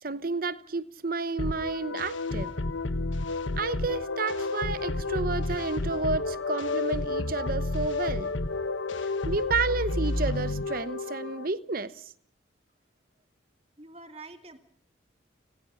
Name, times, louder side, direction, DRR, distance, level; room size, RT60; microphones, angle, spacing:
voice 1, 0.0-2.5 3.6-8.3 9.2-11.9, right 3 dB, 50° right, 0.9 m, -31 dB
sound 1, 1.4-11.5, left 2 dB, 85° left, 1.3 m, -31 dB
voice 2, 13.8-14.6, right 3 dB, 30° right, 2.4 m, -46 dB
29.5 x 19.0 x 5.7 m
head